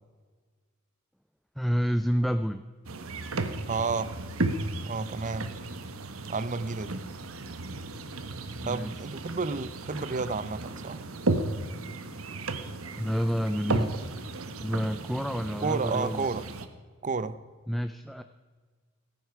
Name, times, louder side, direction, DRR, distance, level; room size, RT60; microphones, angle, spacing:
voice 1, 1.6-2.7 8.6-8.9 12.9-13.9 14.6-16.3 17.7-18.2, equal, ahead, 8 dB, 0.4 m, -28 dB
sound 1, 2.8-16.6, right 2 dB, 80° right, 1.1 m, -34 dB
voice 2, 3.7-4.1 4.8-5.5 6.3-7.0 8.6-11.0 15.6-16.4 17.0-17.4, right 4 dB, 35° right, 14 dB, 0.6 m, -31 dB
17.0 x 9.4 x 5.8 m, 1.5 s
head